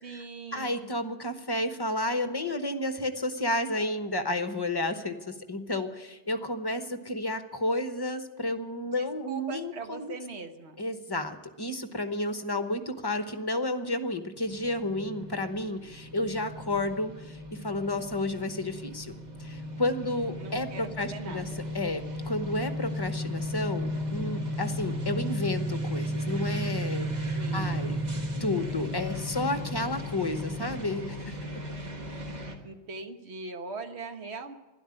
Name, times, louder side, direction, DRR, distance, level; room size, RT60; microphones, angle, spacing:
voice 1, 0.0-0.9 8.9-10.8 20.4-21.6 27.3-27.8 32.6-34.5, right 3 dB, 75° right, 6 dB, 1.4 m, -41 dB
voice 2, 0.5-10.2 10.8-19.1 19.4-21.5 21.7-31.3, left 1 dB, 25° left, 8 dB, 1.0 m, -31 dB
sound 1, 14.5-32.6, equal, 40° right, 1.7 m, -34 dB
12.5 x 11.0 x 9.8 m, 1.1 s
omnidirectional pair, 1.1 m